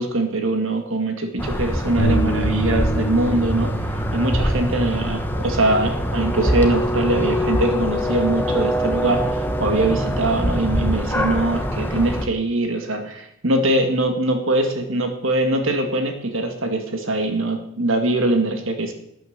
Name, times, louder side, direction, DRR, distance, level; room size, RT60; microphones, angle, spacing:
voice 1, 0.0-3.7 4.1-18.9, right 2 dB, 65° right, 5 dB, 2.1 m, -22 dB
sound 1, 1.4-12.3, equal, 10° left, 1.0 m, -23 dB
sound 2, 2.0-8.2, right 1 dB, 55° left, 3.5 m, -29 dB
12.5 x 9.3 x 6.6 m, 0.77 s
head